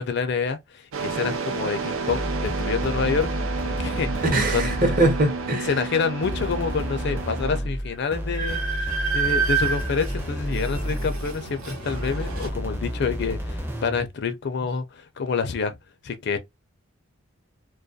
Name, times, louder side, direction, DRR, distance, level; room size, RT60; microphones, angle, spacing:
voice 1, 0.0-3.3 3.6-4.3 4.5-4.8 5.7-15.8 16.0-16.4, left 5 dB, 55° left, 0.4 m, -27 dB
sound 1, 0.9-7.6, right 4 dB, 75° right, 0.4 m, -31 dB
sound 2, 2.1-5.3 6.2-11.4 11.9-14.1, equal, 10° right, 0.4 m, -30 dB
voice 2, 4.3-5.7, right 2 dB, 40° right, 0.7 m, -22 dB
Train, 7.5-7.6 7.9-12.5, right 5 dB, 90° right, 1.0 m, -29 dB
2.3 x 2.2 x 2.5 m
head